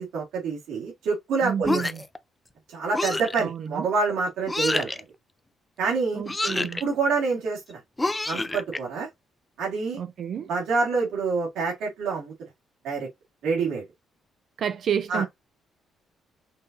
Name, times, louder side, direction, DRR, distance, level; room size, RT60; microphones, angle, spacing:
voice 1, 0.0-1.9 2.7-5.0 5.8-6.2 6.6-7.8 8.3-9.1 9.6-10.0 10.5-12.5 12.8-13.1 13.4-13.8 15.1-15.2, right 4 dB, 85° right, 2.4 m, -27 dB
voice 2, 1.4-2.0 3.4-3.9 6.1-6.8 10.0-10.5 14.6-15.3, right 8 dB, 60° right, 0.4 m, -30 dB
sound 1, 1.6-2.2 2.9-3.4 4.5-5.0 6.2-6.8 8.0-8.8, left 2 dB, 15° left, 0.4 m, -27 dB
5.8 x 2.6 x 2.7 m
cardioid pair, 90°, 0 cm